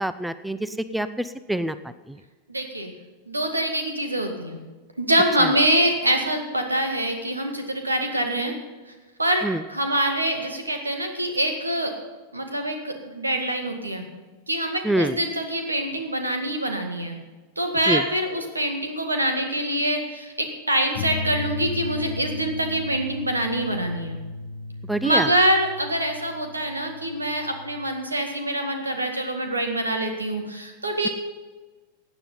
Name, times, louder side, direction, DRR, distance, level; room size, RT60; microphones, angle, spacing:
voice 1, 0.0-2.2 5.4-5.5 9.4-9.6 14.8-15.2 17.9-18.0 24.9-25.3, right 1 dB, 5° right, 14 dB, 0.5 m, -26 dB
voice 2, 2.5-2.9 3.3-4.6 5.0-8.5 9.2-11.9 12.3-14.0 14.5-17.2 17.6-24.2 25.0-31.1, right 1 dB, 80° right, 5 dB, 2.0 m, -25 dB
sound 1, 21.0-27.9, left 3 dB, 50° left, 0.8 m, -35 dB
17.0 x 9.4 x 5.6 m, 1.3 s
figure-of-eight pair, 90°, 0 cm